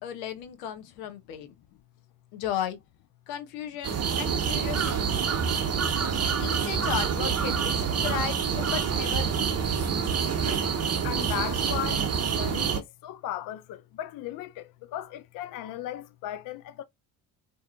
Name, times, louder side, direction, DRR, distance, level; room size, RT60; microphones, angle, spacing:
voice 1, 0.0-1.5 2.3-2.8 3.3-5.1 6.4-9.6, left 9 dB, 75° left, 0.8 m, -35 dB
sound 1, 3.8-12.8, right 6 dB, 30° right, 0.8 m, -27 dB
voice 2, 11.0-16.8, left 12 dB, 45° left, 0.4 m, -36 dB
2.6 x 2.5 x 2.3 m
hypercardioid pair, 55°, 49 cm